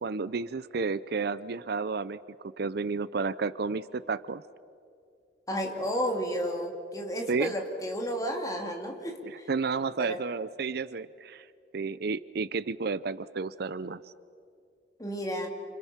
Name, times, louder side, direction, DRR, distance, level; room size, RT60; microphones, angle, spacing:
voice 1, 0.0-2.2 2.6-4.4 7.3-7.5 9.2-11.5 11.7-14.0, right 4 dB, 60° right, 17 dB, 0.5 m, -31 dB
voice 2, 5.5-9.5 10.0-10.2 15.0-15.5, equal, 20° left, 2 dB, 2.8 m, -32 dB
29.5 x 27.5 x 5.9 m, 2.4 s
head